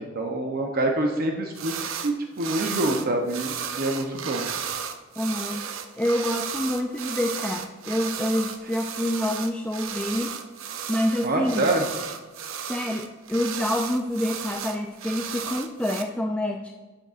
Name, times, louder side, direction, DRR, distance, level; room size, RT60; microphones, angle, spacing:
voice 1, 0.0-4.4 11.2-11.8, right 2 dB, 50° right, 2 dB, 0.8 m, -26 dB
sound 1, 1.5-2.1 2.4-16.0, right 7 dB, 85° right, 0.7 m, -34 dB
voice 2, 5.2-10.3 10.9-11.7 12.7-16.7, left 1 dB, 5° left, 2 dB, 0.4 m, -27 dB
12.0 x 6.6 x 2.5 m, 1.3 s
head